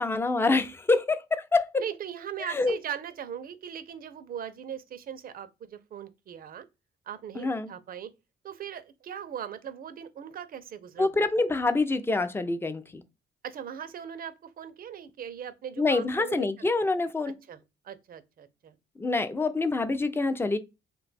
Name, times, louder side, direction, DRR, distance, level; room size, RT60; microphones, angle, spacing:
voice 1, 0.0-1.8 2.4-2.8 7.4-7.7 11.0-13.0 15.8-17.3 19.0-20.6, left 3 dB, 10° left, 0.4 m, -26 dB
voice 2, 1.8-6.6 7.1-8.1 8.4-11.3 13.4-16.5 17.5-17.6 17.8-18.7, right 9 dB, 45° right, 0.5 m, -39 dB
2.5 x 2.3 x 4.0 m
cardioid pair, 90°, 20 cm